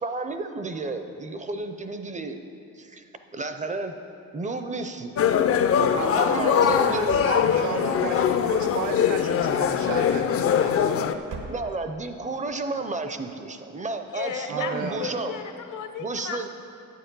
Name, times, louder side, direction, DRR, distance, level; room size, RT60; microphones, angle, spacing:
voice 1, 0.0-2.4 2.8-3.9 4.3-5.1 6.0-7.3 11.4-15.3 16.0-16.5, right 3 dB, 25° right, 8 dB, 0.5 m, -32 dB
sound 1, 5.2-11.1, left 8 dB, 45° left, 0.4 m, -22 dB
voice 2, 5.7-11.3 14.5-15.2, right 4 dB, 65° right, 5 dB, 1.0 m, -33 dB
sound 2, 7.4-8.2 8.7-9.4 10.4-10.9 11.2-12.1, right 4 dB, 80° right, 1.2 m, -44 dB
voice 3, 14.1-16.5, left 7 dB, 70° left, 7 dB, 0.8 m, -35 dB
10.0 x 8.4 x 5.3 m, 2.6 s
wide cardioid pair, 165°, 32 cm